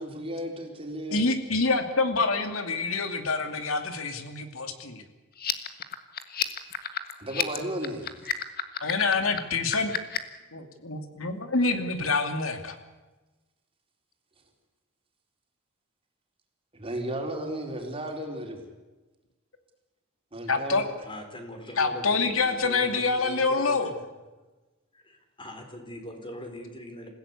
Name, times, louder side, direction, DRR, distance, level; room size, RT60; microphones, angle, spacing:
voice 1, 0.0-1.3 7.2-8.1 16.7-18.6 20.3-20.9, right 1 dB, 25° right, 2 dB, 4.1 m, -34 dB
voice 2, 1.1-5.0 8.8-9.9 10.5-12.8 20.5-20.9 21.7-23.9, left 3 dB, 90° left, 7 dB, 2.6 m, -26 dB
sound 1, 5.3-10.4, left 9 dB, 50° left, 1.6 m, -31 dB
voice 3, 21.0-22.0 22.4-24.0 24.9-27.1, left 1 dB, 25° left, 5 dB, 4.3 m, -41 dB
27.5 x 16.5 x 8.4 m, 1.2 s
head